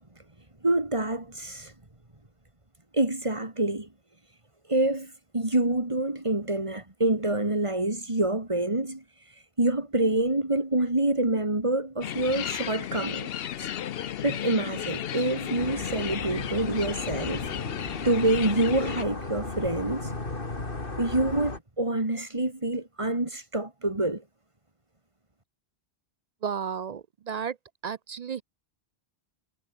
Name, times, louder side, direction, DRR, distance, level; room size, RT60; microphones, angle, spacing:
voice 1, 0.6-1.7 2.9-3.9 4.2-4.4 4.6-13.3 13.6-20.1 21.0-24.2, right 2 dB, 30° right, 2.9 m, -27 dB
sound 1, 12.0-19.0, left 10 dB, 70° left, 0.9 m, -34 dB
sound 2, 15.6-21.6, left 2 dB, 55° left, 3.3 m, -35 dB
voice 2, 26.4-27.6 27.8-28.4, right 7 dB, 55° right, 0.5 m, -33 dB
omnidirectional pair, 1.1 m